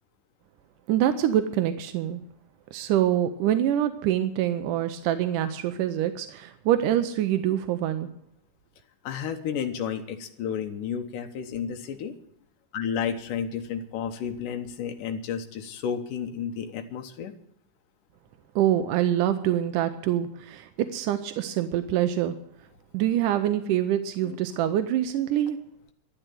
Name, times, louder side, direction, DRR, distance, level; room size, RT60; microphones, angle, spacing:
voice 1, 0.9-2.2 2.7-8.1 18.6-22.4 22.9-25.6, right 11 dB, 90° right, 9 dB, 2.3 m, -25 dB
voice 2, 9.0-12.2 12.7-17.3 24.2-24.4, left 7 dB, 90° left, 5 dB, 2.7 m, -32 dB
12.5 x 9.0 x 9.1 m, 0.72 s
omnidirectional pair, 3.6 m